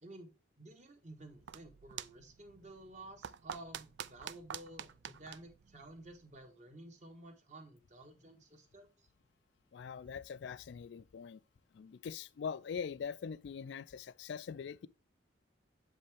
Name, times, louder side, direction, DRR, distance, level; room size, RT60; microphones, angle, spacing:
voice 1, 0.0-0.3 0.6-9.1, right 1 dB, 40° right, 1.3 m, -53 dB
sound 1, 1.1-6.5, right 9 dB, 70° right, 0.4 m, -48 dB
voice 2, 9.7-11.4 11.7-14.9, left 6 dB, 70° left, 0.3 m, -42 dB
7.6 x 5.3 x 3.4 m
head